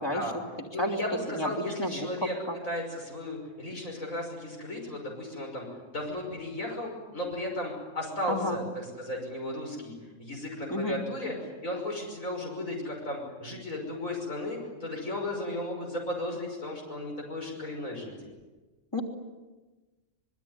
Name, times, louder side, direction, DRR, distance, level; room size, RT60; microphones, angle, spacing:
voice 1, 0.7-2.3 2.6-9.9 10.2-18.3, left 1 dB, 80° left, 0 dB, 6.2 m, -35 dB
voice 2, 8.3-8.6 10.7-11.0 18.9-19.0, left 1 dB, 20° left, 1 dB, 3.3 m, -30 dB
25.5 x 23.0 x 9.8 m, 1.2 s
omnidirectional pair, 1.4 m